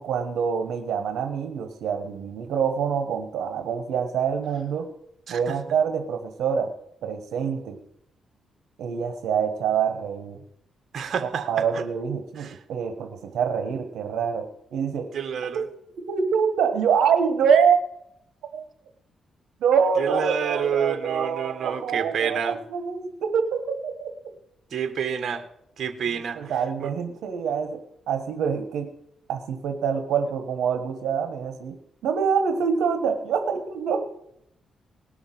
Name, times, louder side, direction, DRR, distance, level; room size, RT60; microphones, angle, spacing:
voice 1, 0.0-4.9 5.3-6.7 7.0-7.8 8.8-10.4 11.2-15.1 15.5-15.6 16.0-17.8 18.5-18.6 19.6-24.1 26.0-27.8 28.1-28.9 29.3-31.8 32.0-34.0, right 7 dB, 85° right, 6 dB, 1.4 m, -25 dB
voice 2, 10.9-11.5 11.7-11.8 12.4-12.5 15.1-15.6 20.0-22.6 24.7-25.4 25.8-26.5 26.8-26.9, right 7 dB, 60° right, 7 dB, 1.7 m, -28 dB
19.5 x 6.5 x 7.6 m, 0.75 s
cardioid pair, 90°, 0 cm